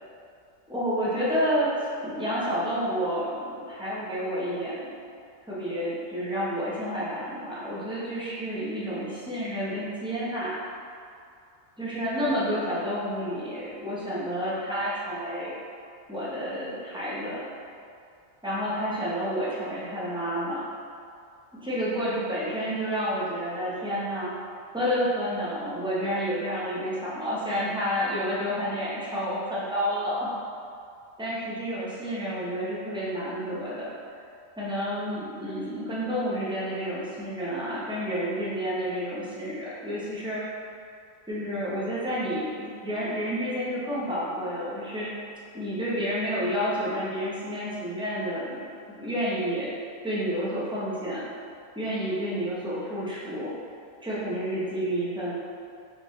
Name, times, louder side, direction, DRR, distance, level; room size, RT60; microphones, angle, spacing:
voice 1, 0.7-4.9 5.5-10.6 11.8-15.5 16.1-17.5 18.4-20.6 21.6-24.3 24.7-30.3 31.2-33.9 34.6-40.4 41.3-45.1 45.5-48.6 49.0-49.7 50.0-51.3 51.8-53.5 54.0-55.3, equal, 5° right, -9 dB, 0.6 m, -30 dB
3.9 x 3.4 x 3.0 m, 2.4 s
omnidirectional pair, 1.4 m